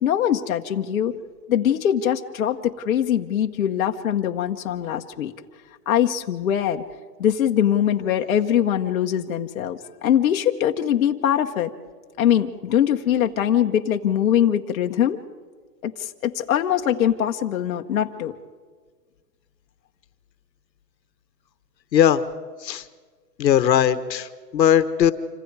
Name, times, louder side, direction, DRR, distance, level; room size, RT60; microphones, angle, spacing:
voice 1, 0.0-1.1 1.5-5.3 5.9-6.8 7.2-11.7 12.2-15.2 15.8-18.3, left 10 dB, 55° left, 3 dB, 1.1 m, -22 dB
voice 2, 23.4-24.3 24.5-25.1, left 9 dB, 80° left, 12 dB, 1.3 m, -18 dB
27.0 x 25.5 x 4.8 m, 1.6 s
hypercardioid pair, 175°, 50 cm